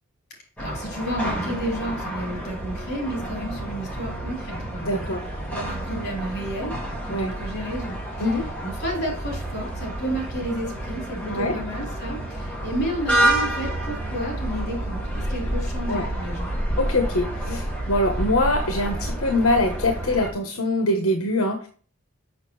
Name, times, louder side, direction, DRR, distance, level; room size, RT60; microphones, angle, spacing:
voice 1, 0.6-5.0 5.5-8.3 8.6-16.5, right 1 dB, 50° left, -2 dB, 4.0 m, -31 dB
sound 1, 0.6-20.3, right 1 dB, 5° left, 2.1 m, -29 dB
voice 2, 4.8-5.2 7.1-7.3 8.2-8.5 11.3-11.5 15.9-16.0 16.8-21.7, left 1 dB, 80° left, 3 dB, 1.2 m, -23 dB
6.7 x 6.6 x 3.2 m, 0.40 s
head